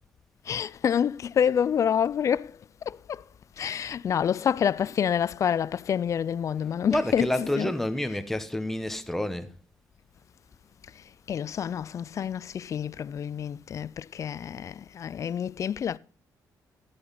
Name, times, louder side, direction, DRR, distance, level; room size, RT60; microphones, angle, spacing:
voice 1, 0.5-2.5 3.6-7.7 11.3-16.0, left 8 dB, 50° left, 0.4 m, -27 dB
voice 2, 6.9-9.5, left 1 dB, 5° left, 1.0 m, -29 dB
12.0 x 8.6 x 4.0 m
cardioid pair, 95°, 7 cm